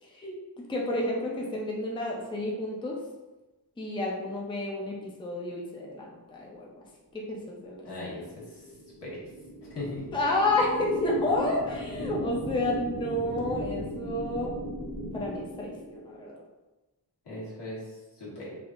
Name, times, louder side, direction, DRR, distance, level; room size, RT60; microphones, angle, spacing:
voice 1, 0.0-0.4 0.7-2.9 3.8-6.8 7.1-7.8 10.1-14.5 15.1-16.3, left 1 dB, 10° left, -2 dB, 0.4 m, -30 dB
sound 1, 7.5-16.3, equal, 15° right, 0.7 m, -38 dB
voice 2, 7.8-8.7 9.0-9.2 9.7-10.1 17.2-18.6, left 1 dB, 75° left, -8 dB, 1.3 m, -39 dB
3.3 x 2.5 x 2.4 m, 1.1 s
wide cardioid pair, 130°, 41 cm